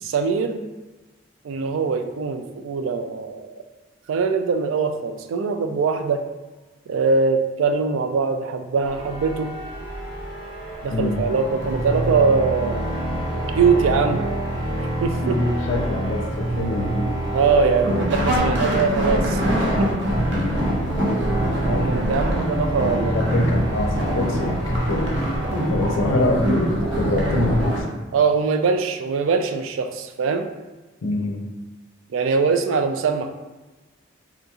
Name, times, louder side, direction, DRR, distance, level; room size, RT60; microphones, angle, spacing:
voice 1, 0.0-0.7 1.4-3.6 4.1-6.2 6.9-9.5 10.8-12.8 13.6-14.2 15.0-15.4 17.3-19.4 19.8-19.9 21.0-21.3 21.6-23.3 28.1-30.5 32.1-33.3, right 5 dB, 85° right, 7 dB, 0.3 m, -22 dB
sound 1, 8.8-27.8, right 1 dB, 70° right, 0.8 m, -24 dB
voice 2, 10.9-11.3 15.2-17.2 20.2-20.7 21.6-22.0 22.9-25.2 25.7-27.9 31.0-31.5, left 2 dB, 80° left, 3 dB, 0.5 m, -25 dB
3.6 x 2.7 x 2.3 m, 1.2 s
head